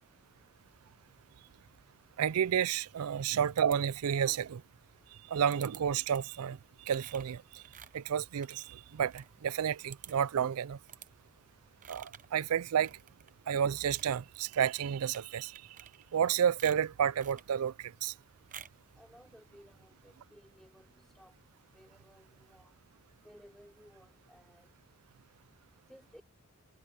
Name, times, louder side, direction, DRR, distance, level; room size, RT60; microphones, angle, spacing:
voice 1, 2.2-4.6 5.3-6.6 6.9-7.6 7.9-10.8 11.9-13.0 13.5-15.6 16.1-18.1, right 8 dB, 80° right, 0.4 m, -31 dB
sound 1, 3.6-4.3 5.5-5.8 6.1-6.4 6.9-9.3 9.6-9.7 9.9-10.4 10.9-11.1 11.8-12.3 12.8-13.3 13.7-14.2 15.0-15.3 15.5-16.3 16.6-17.5 18.5-18.9, right 9 dB, 35° right, 0.8 m, -51 dB
voice 2, 18.9-22.8 23.2-24.8 25.9-26.2, equal, ahead, 4.4 m, -59 dB
head